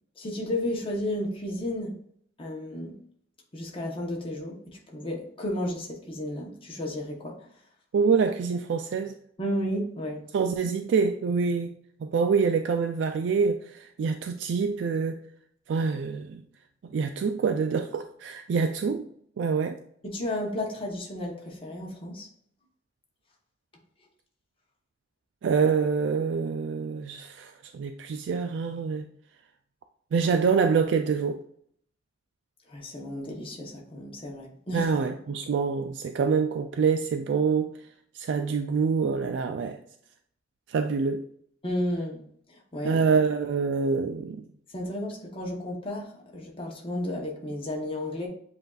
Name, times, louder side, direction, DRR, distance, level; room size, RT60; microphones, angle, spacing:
voice 1, 0.2-2.0 2.4-2.9 3.5-7.4 9.4-10.2 20.0-22.3 32.7-34.9 41.6-42.2 42.5-43.0 44.7-48.3, left 1 dB, 30° left, 0.8 m, -33 dB
voice 2, 7.9-9.2 10.3-11.7 12.0-15.2 15.7-16.4 16.8-19.1 19.4-19.8 25.4-29.1 30.1-31.4 34.7-37.7 38.1-39.8 40.7-41.3 42.8-44.4, right 5 dB, 65° right, 0.3 m, -26 dB
7.7 x 2.6 x 2.3 m
head